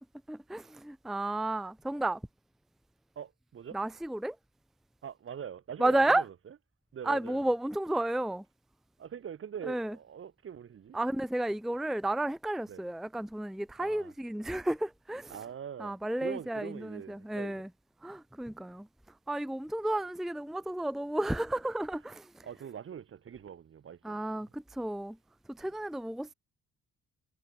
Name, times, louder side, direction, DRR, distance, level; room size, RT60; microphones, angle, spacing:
voice 1, 0.3-2.2 3.7-4.4 5.8-6.2 7.0-8.4 9.7-10.0 10.9-15.4 15.8-17.7 18.0-18.9 19.3-22.5 24.0-25.2 25.5-26.3, right 1 dB, ahead, 0.6 m, -32 dB
voice 2, 3.1-3.8 5.0-6.5 6.9-7.5 9.0-11.0 12.7-12.8 13.8-14.1 15.3-17.6 22.4-24.5, right 8 dB, 45° right, 1.2 m, -43 dB
cardioid pair, 90°, 30 cm